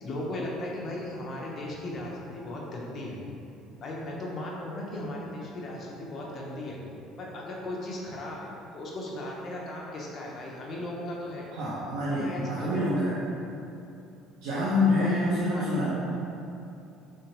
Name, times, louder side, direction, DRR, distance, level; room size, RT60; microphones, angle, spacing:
voice 1, 0.0-3.2 3.8-6.8 7.2-11.4 12.1-12.8 15.0-15.2 15.5-15.8, left 1 dB, 30° left, -3 dB, 0.7 m, -37 dB
voice 2, 11.5-13.1 14.4-15.9, left 2 dB, 80° right, -8 dB, 0.6 m, -26 dB
3.8 x 3.3 x 2.9 m, 2.8 s
cardioid pair, 145°, 0 cm